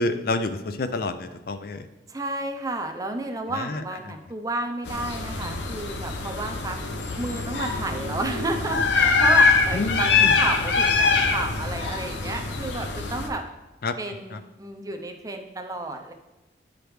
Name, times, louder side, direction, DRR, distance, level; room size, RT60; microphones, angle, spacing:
voice 1, 0.0-1.9 3.5-3.8 9.7-10.3 13.8-13.9 14.3-14.4, left 2 dB, 55° left, 10 dB, 0.4 m, -28 dB
voice 2, 2.1-6.8 7.2-13.4 14.0-16.1, right 2 dB, 20° right, 4 dB, 0.6 m, -31 dB
sound 1, 4.9-13.3, left 4 dB, 85° left, 0.8 m, -23 dB
10.0 x 5.0 x 3.1 m, 1.1 s
head